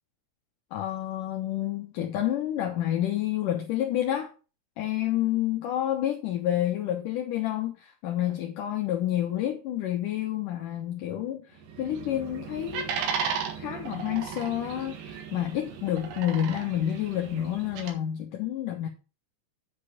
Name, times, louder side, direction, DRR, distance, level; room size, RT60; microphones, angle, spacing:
voice 1, 0.7-4.3 4.8-12.9 13.6-18.9, left 12 dB, 70° left, 2.2 m, -29 dB
sound 1, 11.6-17.9, right 6 dB, 85° right, 3.8 m, -35 dB
9.6 x 5.3 x 6.6 m
omnidirectional pair, 4.7 m